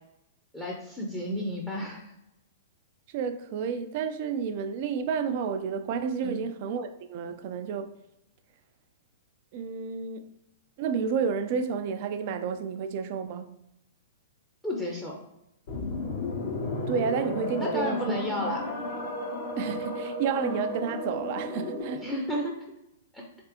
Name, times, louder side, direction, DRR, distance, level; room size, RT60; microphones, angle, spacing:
voice 1, 0.5-2.1 6.2-6.4 14.6-15.2 17.6-18.6 22.0-22.6 23.1-23.2, equal, 5° left, 0.6 m, -32 dB
voice 2, 3.1-7.9 9.5-10.2 10.8-13.6 16.9-18.2 19.6-22.1, right 6 dB, 45° right, 0.3 m, -31 dB
sound 1, 15.7-22.1, left 2 dB, 55° left, 0.9 m, -33 dB
3.4 x 3.2 x 2.9 m
figure-of-eight pair, 110°, 0 cm